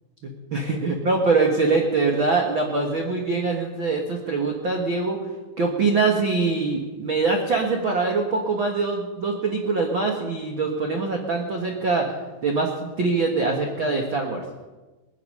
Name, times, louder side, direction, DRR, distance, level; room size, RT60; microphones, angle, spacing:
voice 1, 0.5-5.2 5.6-12.1 12.4-14.4, right 3 dB, 65° right, 1 dB, 1.2 m, -23 dB
20.5 x 11.0 x 5.5 m, 1.2 s
omnidirectional pair, 4.6 m